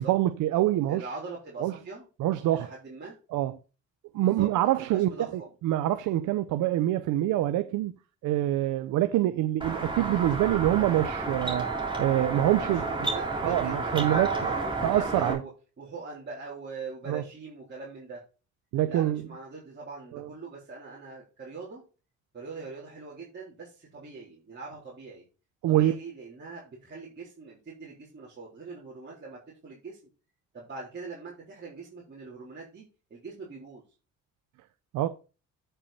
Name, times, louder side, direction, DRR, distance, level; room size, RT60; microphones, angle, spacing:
voice 1, 0.0-1.1 1.6-1.7 2.2-2.7 3.3-3.5 4.1-5.1 5.6-7.9 8.2-11.7 12.0-12.9 13.4-14.6 14.8-15.4 17.1-17.2 18.7-19.2 20.1-20.3 25.6-26.0 34.9-35.1, right 14 dB, 85° right, 0.6 m, -25 dB
voice 2, 0.9-2.1 2.5-3.1 4.1-4.5 4.8-5.5 12.7-15.5 15.8-18.2 18.9-21.8 22.3-25.3 25.7-30.0 30.5-32.8 33.1-33.8, right 4 dB, 35° right, 3.5 m, -42 dB
sound 1, 9.6-15.3, right 3 dB, 15° right, 3.3 m, -31 dB
8.6 x 5.5 x 4.1 m
cardioid pair, 90°, 30 cm